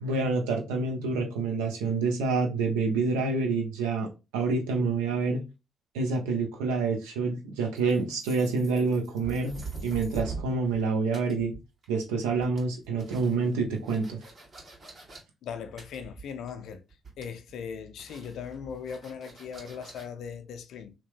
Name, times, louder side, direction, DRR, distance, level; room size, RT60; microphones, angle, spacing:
voice 1, 0.0-5.4 5.9-9.6 9.8-11.5 11.9-14.2, right 4 dB, 85° right, 0.5 m, -27 dB
sound 1, 7.8-10.8 11.1-12.0 12.3-15.2 15.8-16.6 16.9-17.5 18.0-20.1, right 4 dB, 50° right, 1.5 m, -43 dB
voice 2, 15.4-16.8 17.2-20.9, left 7 dB, 70° left, 0.4 m, -39 dB
2.8 x 2.1 x 3.0 m
hypercardioid pair, 45°, 0 cm